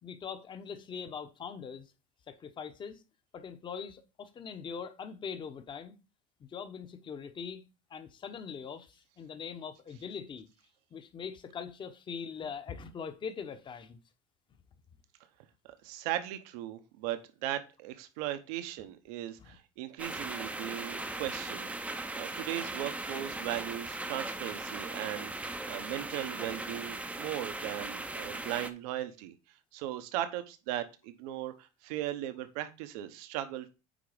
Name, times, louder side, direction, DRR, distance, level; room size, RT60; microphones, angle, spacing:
voice 1, 0.0-1.9 2.3-3.0 3.3-6.0 6.4-7.6 7.9-10.5 10.9-14.0 19.4-19.6, left 6 dB, 25° left, 0.9 m, -42 dB
voice 2, 15.8-29.3 29.7-33.7, right 13 dB, 80° right, 1.1 m, -38 dB
sound 1, 20.0-28.7, right 2 dB, 5° right, 0.6 m, -38 dB
9.2 x 3.5 x 5.0 m
cardioid pair, 145°, 19 cm